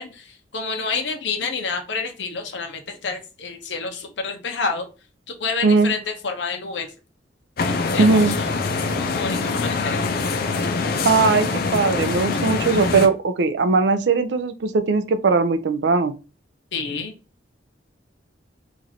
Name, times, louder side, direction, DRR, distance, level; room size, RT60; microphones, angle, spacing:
voice 1, 0.0-4.9 5.3-6.9 7.7-8.5 9.0-10.0 16.7-17.1, left 4 dB, 85° left, 0.9 m, -29 dB
voice 2, 5.6-5.9 8.0-8.3 11.0-16.1, right 4 dB, 70° right, 0.5 m, -19 dB
sound 1, 7.6-13.1, left 4 dB, 55° left, 0.6 m, -24 dB
3.1 x 2.6 x 4.0 m
head